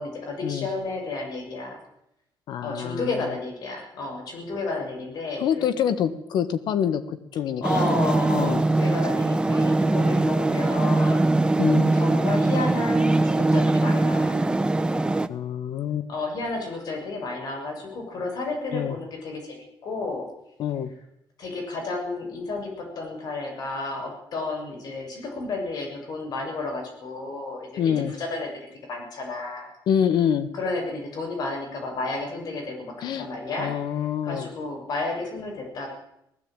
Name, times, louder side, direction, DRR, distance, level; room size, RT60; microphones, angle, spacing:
voice 1, 0.0-1.8 2.6-5.7 7.6-11.3 11.9-14.4 16.1-20.3 21.4-27.9 28.2-28.5 28.9-29.7 30.5-33.7 34.2-35.9, left 3 dB, 60° left, 2 dB, 7.0 m, -31 dB
voice 2, 2.5-3.3 5.4-8.0 8.3-8.6 11.6-11.9 15.3-16.1 18.7-19.0 20.6-20.9 27.8-28.1 29.9-30.5 33.0-33.3 33.6-34.5, left 8 dB, 80° left, 12 dB, 1.6 m, -26 dB
sound 1, 7.6-15.3, right 2 dB, 10° right, 1.0 m, -22 dB
19.5 x 15.0 x 9.0 m, 0.81 s
cardioid pair, 125°, 7 cm